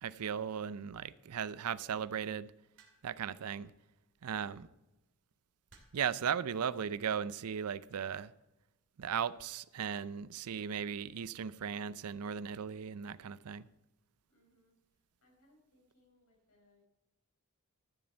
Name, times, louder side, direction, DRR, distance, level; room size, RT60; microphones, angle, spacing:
voice 1, 0.0-2.5 3.0-3.7 4.2-4.7 5.9-8.3 9.0-13.7, right 7 dB, 80° right, 0.5 m, -37 dB
sound 1, 2.8-3.3 4.5-4.8 5.7-6.2 7.1-7.5, right 4 dB, 60° right, 2.6 m, -63 dB
voice 2, 4.4-4.7 14.3-16.9, left 1 dB, 80° left, 4.6 m, -70 dB
13.5 x 7.7 x 4.4 m
head